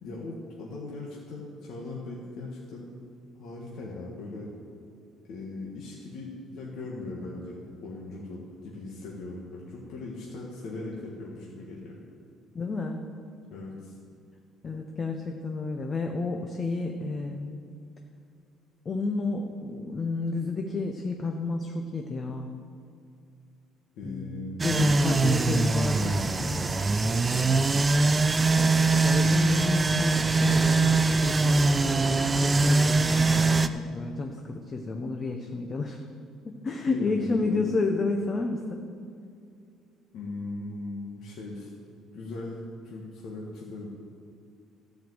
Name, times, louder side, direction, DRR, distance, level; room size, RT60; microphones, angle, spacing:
voice 1, 0.0-2.9 3.4-4.5 5.2-12.0 13.5-14.0 23.9-26.2 27.3-27.7 36.8-37.7 40.1-41.7 42.1-43.9, left 2 dB, 60° left, -4 dB, 1.6 m, -39 dB
voice 2, 12.5-13.1 14.6-17.6 18.8-22.5 24.0-26.6 28.4-36.0 36.4-38.9, left 3 dB, 25° left, 3 dB, 0.7 m, -31 dB
sound 1, 24.6-33.7, right 3 dB, 15° right, 0.4 m, -23 dB
13.5 x 5.2 x 7.9 m, 2.4 s
cardioid pair, 155°, 0 cm